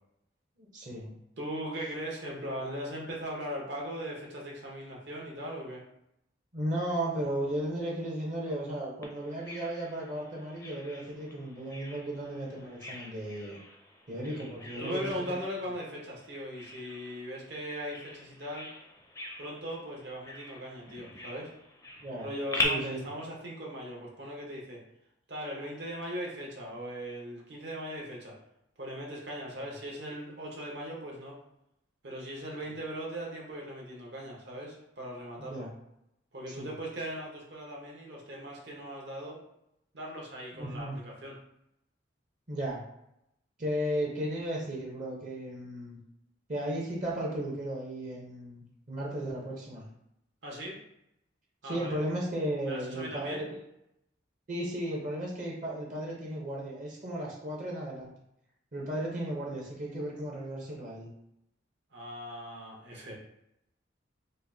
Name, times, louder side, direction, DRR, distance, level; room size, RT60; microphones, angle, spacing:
voice 1, 0.6-1.1 6.5-13.6 14.1-15.0 22.0-22.3 22.6-23.1 29.6-29.7 35.5-35.7 36.5-36.7 40.5-41.0 42.5-42.8 43.6-46.0 46.5-49.9 51.6-53.6 54.5-58.1 58.7-61.1, right 1 dB, 40° right, -3 dB, 0.7 m, -35 dB
voice 2, 1.4-5.8 14.8-18.7 19.4-21.5 22.2-24.8 25.3-28.3 28.8-31.4 32.0-35.7 36.3-39.4 39.9-41.3 50.4-50.8 51.6-52.0 52.6-53.5 61.9-63.1, equal, 60° right, -3 dB, 1.0 m, -39 dB
Bird vocalization bird call bird song, 9.0-22.6, left 2 dB, 15° left, 0.4 m, -42 dB
5.1 x 2.1 x 2.7 m, 0.81 s
head